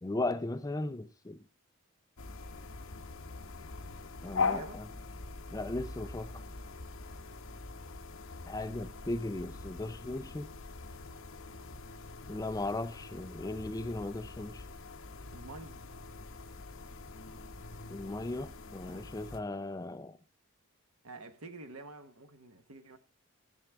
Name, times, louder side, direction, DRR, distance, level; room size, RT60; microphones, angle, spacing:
voice 1, 0.0-1.4 4.2-4.9 5.5-6.4 8.5-10.5 12.3-14.6 17.9-20.2, left 2 dB, 15° left, 0.4 m, -37 dB
sound 1, 2.2-19.4, left 4 dB, 65° left, 1.0 m, -42 dB
voice 2, 4.3-4.8 15.3-15.8 21.0-23.0, right 2 dB, 80° right, 1.1 m, -48 dB
13.5 x 7.2 x 3.5 m
head